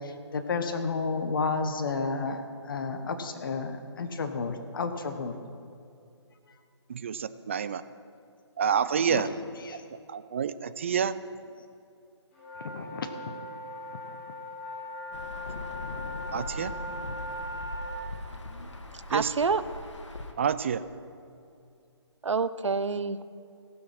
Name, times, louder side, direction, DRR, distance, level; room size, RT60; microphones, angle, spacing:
voice 1, 0.3-5.4 8.9-9.2 9.7-9.8 12.7-13.4 18.6-18.7, left 4 dB, 45° left, 7 dB, 1.0 m, -31 dB
voice 2, 6.9-7.8 8.6-9.3 10.1-11.1 16.3-16.7 19.1-19.3 20.4-20.8, right 7 dB, 25° right, 14 dB, 0.3 m, -28 dB
sound 1, 12.4-18.0, left 1 dB, 25° left, 2.3 m, -39 dB
Insect / Thunder / Rain, 15.1-20.3, left 1 dB, 80° left, 1.5 m, -40 dB
voice 3, 19.1-19.6 22.2-23.2, right 4 dB, 80° right, 14 dB, 0.6 m, -27 dB
18.5 x 6.3 x 5.9 m, 2.5 s
figure-of-eight pair, 155°, 15 cm